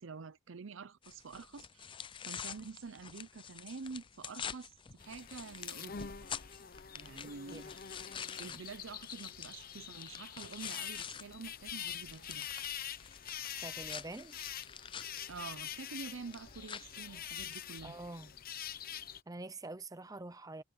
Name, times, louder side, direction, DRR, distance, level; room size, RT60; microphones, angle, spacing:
voice 1, 0.0-1.9 2.3-6.0 6.9-7.7 8.4-12.5 15.3-17.9, right 4 dB, 75° right, 0.6 m, -47 dB
sound 1, 1.0-11.2 11.6-17.6, left 8 dB, 25° left, 0.4 m, -47 dB
sound 2, 5.0-19.2, left 9 dB, 50° left, 1.0 m, -45 dB
voice 2, 13.6-14.4 17.8-18.3 19.3-20.6, right 2 dB, 20° right, 0.7 m, -45 dB
head